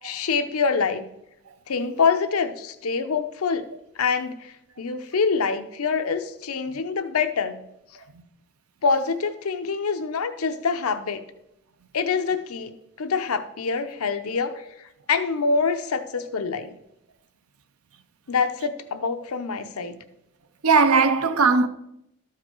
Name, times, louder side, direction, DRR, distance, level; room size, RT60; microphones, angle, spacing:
voice 1, 0.0-1.1 1.7-3.7 4.0-7.5 8.8-11.2 11.9-16.8 18.3-20.0, left 5 dB, 80° left, 0.6 m, -25 dB
voice 2, 20.6-21.7, right 4 dB, 80° right, 0.6 m, -20 dB
12.5 x 4.9 x 4.5 m
head